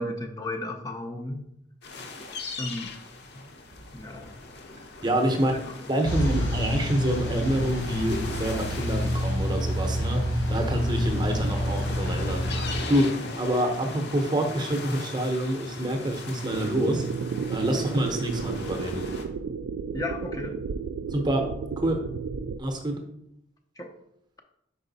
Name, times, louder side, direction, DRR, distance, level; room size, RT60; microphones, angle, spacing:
voice 1, 0.0-1.4 2.6-2.9 3.9-4.3 5.5-5.6 6.4-6.5 19.9-20.6 23.8-23.9, left 1 dB, 20° left, 2 dB, 0.5 m, -34 dB
sound 1, 1.8-19.2, left 3 dB, 60° left, 0.9 m, -40 dB
voice 2, 5.0-5.5 5.9-12.4 12.9-17.0 17.5-19.1 21.1-22.0 22.6-23.0, right 1 dB, 20° right, 4 dB, 0.7 m, -27 dB
sound 2, 6.0-12.8, equal, 80° left, 2.1 m, -28 dB
sound 3, 16.5-22.6, right 5 dB, 90° right, 0.3 m, -33 dB
5.0 x 4.8 x 3.9 m, 0.75 s
head